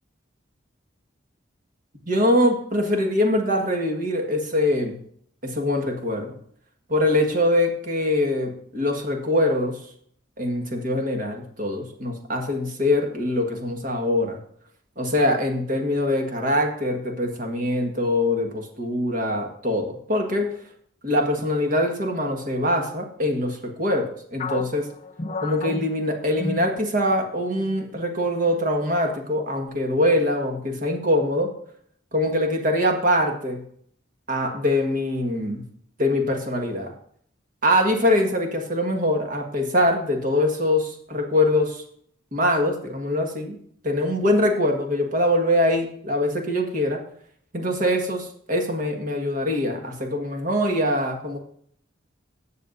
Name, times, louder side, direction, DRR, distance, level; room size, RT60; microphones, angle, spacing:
voice 1, 2.1-5.0 5.4-6.3 6.9-9.8 10.4-14.4 15.0-20.5 21.0-24.9 25.4-31.5 32.1-33.6 34.3-35.7 36.0-36.9 37.6-41.8 42.3-43.6 43.8-47.0 47.5-51.4, left 1 dB, 45° right, 3 dB, 1.6 m, -23 dB
sound 1, 24.4-27.2 27.6-27.8 28.4-28.9, left 3 dB, 35° left, 0.6 m, -33 dB
17.0 x 6.6 x 2.6 m, 0.64 s
head